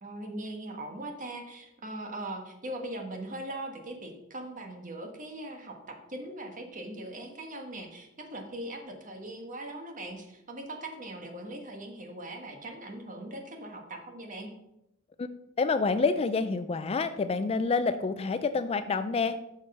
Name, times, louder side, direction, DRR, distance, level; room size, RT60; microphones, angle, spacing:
voice 1, 0.0-14.5, right 1 dB, 40° right, 3 dB, 1.4 m, -40 dB
voice 2, 15.6-19.4, left 4 dB, 30° left, 11 dB, 0.3 m, -28 dB
6.5 x 6.2 x 5.5 m, 0.87 s
head